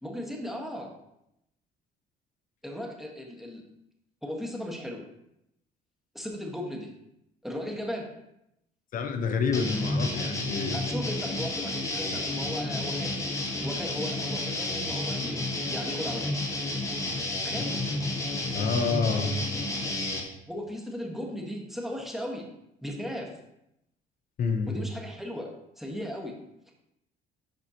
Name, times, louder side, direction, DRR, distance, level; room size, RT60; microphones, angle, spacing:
voice 1, 0.0-0.9 2.6-3.6 4.2-5.0 6.1-6.9 7.4-8.1 10.7-13.4 13.6-15.4 15.7-16.3 17.4-17.8 20.5-22.5 22.8-23.3 24.7-25.5 25.8-26.4, equal, ahead, -1 dB, 1.4 m, -36 dB
voice 2, 8.9-10.8 17.7-17.9 18.5-19.4 24.4-24.8, left 4 dB, 55° left, 7 dB, 0.8 m, -28 dB
sound 1, 9.5-20.2, left 2 dB, 20° left, 1.2 m, -31 dB
11.5 x 4.3 x 2.9 m, 0.81 s
cardioid pair, 110°, 17 cm